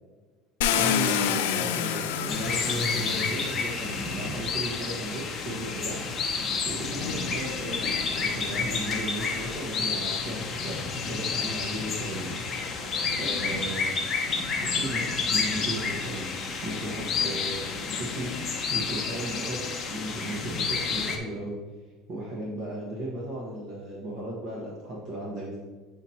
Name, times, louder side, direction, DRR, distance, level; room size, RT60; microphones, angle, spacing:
Car, 0.6-4.7 5.7-5.8 6.3-9.6, left 8 dB, 90° left, 0.5 m, -30 dB
voice 1, 0.7-14.0 14.6-16.3 16.6-21.5 22.1-25.6, right 1 dB, 45° right, -4 dB, 1.3 m, -36 dB
sound 1, 2.3-21.2, left 5 dB, 30° left, 0.8 m, -30 dB
7.9 x 2.8 x 4.3 m, 1.3 s
supercardioid pair, 135°, 0 cm